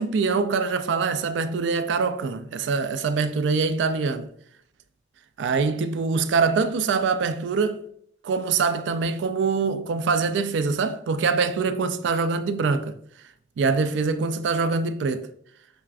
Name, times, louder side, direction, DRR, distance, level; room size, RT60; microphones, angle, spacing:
voice 1, 0.0-4.3 5.4-7.8 8.2-13.0 13.6-15.3, right 4 dB, 70° right, 0.3 m, -24 dB
5.8 x 2.3 x 2.4 m
head